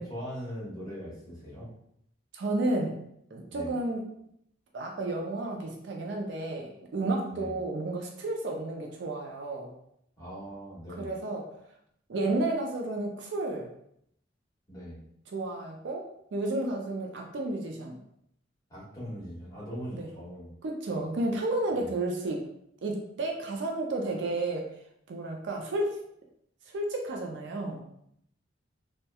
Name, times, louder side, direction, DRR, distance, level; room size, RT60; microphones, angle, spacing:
voice 1, 0.0-1.7 3.5-3.7 7.3-7.5 10.2-11.1 14.7-15.0 18.7-20.5 20.9-21.0 21.7-21.9, equal, 20° left, -8 dB, 1.1 m, -41 dB
voice 2, 2.3-3.0 3.3-4.0 4.7-9.7 11.0-11.5 12.1-13.7 15.3-16.0 16.3-17.9 19.9-20.1 20.6-22.4 22.8-24.7 25.1-26.0 26.7-27.8, right 2 dB, 65° right, 1 dB, 0.4 m, -31 dB
2.8 x 2.1 x 2.2 m, 0.72 s
head